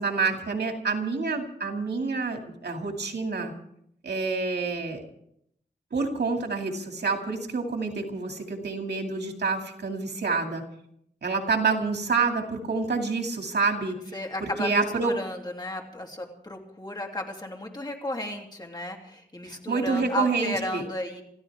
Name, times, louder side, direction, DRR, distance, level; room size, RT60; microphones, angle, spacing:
voice 1, 0.0-3.5 4.0-5.0 5.9-10.6 11.2-14.0 14.4-15.1 19.5-20.8, right 4 dB, 85° right, 3 dB, 2.5 m, -28 dB
voice 2, 14.1-21.2, left 1 dB, 25° left, 0 dB, 3.0 m, -34 dB
27.5 x 14.5 x 3.6 m, 0.72 s
wide cardioid pair, 125°, 17 cm